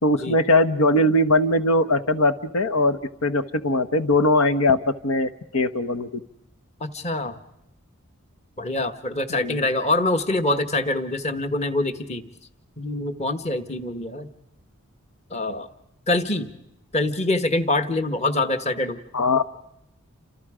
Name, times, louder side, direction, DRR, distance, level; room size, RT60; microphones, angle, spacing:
voice 1, 0.0-4.8 5.0-6.2 9.4-9.6 19.1-19.4, left 1 dB, 90° left, 11 dB, 1.1 m, -20 dB
voice 2, 6.8-7.4 8.6-12.2 12.8-14.3 15.3-15.7 16.1-16.5 16.9-19.0, left 2 dB, 30° left, 9 dB, 1.3 m, -25 dB
29.5 x 26.5 x 5.0 m, 0.81 s
head